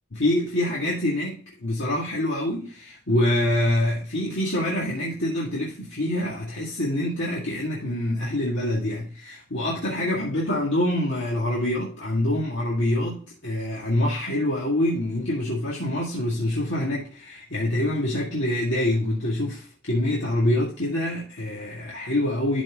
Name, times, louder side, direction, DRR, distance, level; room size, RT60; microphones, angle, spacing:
voice 1, 0.1-22.6, left 1 dB, 60° left, 2.1 m, -25 dB
12.5 x 4.4 x 3.6 m
head